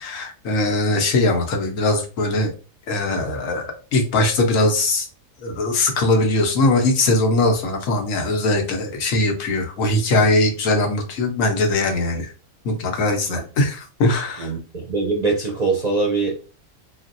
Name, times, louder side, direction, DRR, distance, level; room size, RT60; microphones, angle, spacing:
voice 1, 0.0-2.5 2.9-5.1 5.4-12.3 12.6-14.5, left 2 dB, 80° left, 1.2 m, -20 dB
voice 2, 14.4-16.4, right 3 dB, 50° right, 0.5 m, -22 dB
3.7 x 2.1 x 2.6 m
omnidirectional pair, 1.4 m